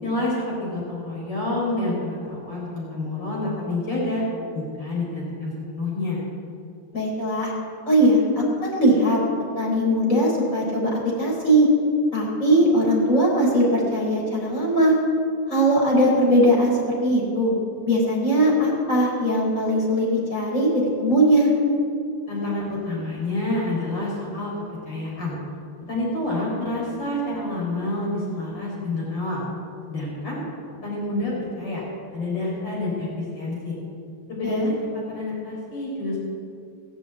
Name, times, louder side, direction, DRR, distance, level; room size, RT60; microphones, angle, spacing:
voice 1, 0.0-4.2 4.5-6.2 22.3-24.5 24.8-25.4 25.9-29.4 29.9-30.4 30.8-31.8 32.1-33.8 34.3-36.2, left 2 dB, 65° left, -5 dB, 5.0 m, -28 dB
voice 2, 6.9-7.5 7.9-9.2 9.6-11.7 12.1-14.9 15.5-17.5 17.9-21.5 34.4-34.7, right 1 dB, 40° left, -4 dB, 4.9 m, -20 dB
19.0 x 7.8 x 8.3 m, 2.5 s
omnidirectional pair, 2.1 m